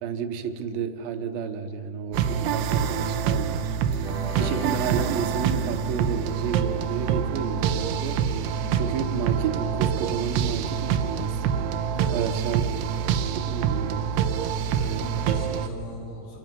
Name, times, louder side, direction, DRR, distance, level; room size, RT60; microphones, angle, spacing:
voice 1, 0.0-3.8 4.4-11.6 12.1-12.6 13.0-14.0, right 7 dB, 70° right, 7 dB, 2.7 m, -31 dB
sound 1, 2.1-15.7, right 8 dB, 85° right, 3.0 m, -26 dB
sound 2, 3.8-10.2, left 3 dB, 50° left, 2.2 m, -44 dB
sound 3, 4.0-8.9, equal, 15° right, 0.4 m, -41 dB
voice 2, 11.9-12.9 14.3-16.4, right 1 dB, 75° left, -2 dB, 5.3 m, -40 dB
29.0 x 26.0 x 5.4 m, 2.6 s
omnidirectional pair, 4.9 m